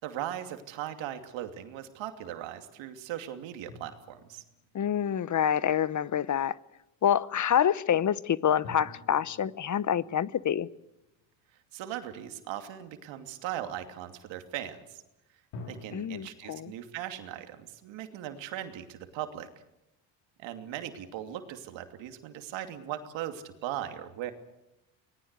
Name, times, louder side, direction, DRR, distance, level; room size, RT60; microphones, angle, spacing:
voice 1, 0.0-4.4 11.7-15.0 15.6-19.5 20.4-24.3, right 11 dB, 75° right, 7 dB, 2.8 m, -39 dB
sound 1, 3.7-5.6 8.6-11.9 15.5-16.0, left 2 dB, 75° left, 5.1 m, -49 dB
voice 2, 4.7-6.6 7.0-10.7 15.9-16.7, left 9 dB, 40° left, 19 dB, 0.9 m, -27 dB
25.5 x 19.5 x 8.2 m, 0.91 s
supercardioid pair, 70°, 46 cm